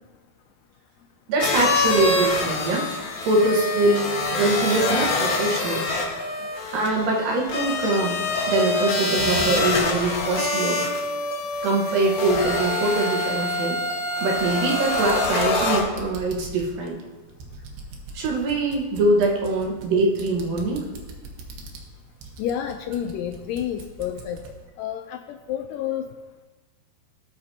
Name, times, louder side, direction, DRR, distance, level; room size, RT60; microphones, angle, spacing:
voice 1, 1.3-2.9 3.2-5.8 6.7-8.2 8.5-10.8 11.6-13.8 14.2-17.0 18.1-20.9, right 2 dB, 70° right, -1 dB, 3.0 m, -23 dB
sound 1, 1.4-15.8, left 2 dB, 60° left, 1.3 m, -25 dB
sound 2, 14.2-24.6, right 3 dB, 90° right, 3.0 m, -42 dB
voice 2, 22.4-24.4 24.8-26.1, left 10 dB, 80° left, 5 dB, 2.0 m, -29 dB
17.5 x 6.0 x 2.8 m, 1.3 s
omnidirectional pair, 4.1 m